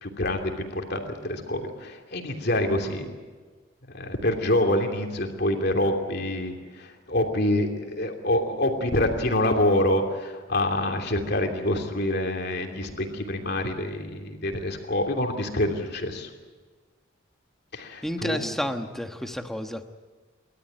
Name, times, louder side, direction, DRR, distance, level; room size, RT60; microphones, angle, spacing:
voice 1, 0.0-3.1 3.9-16.3 17.7-18.5, left 1 dB, 55° left, 3 dB, 3.0 m, -26 dB
voice 2, 18.0-19.9, equal, ahead, 6 dB, 1.2 m, -31 dB
29.0 x 13.0 x 9.1 m, 1.4 s
head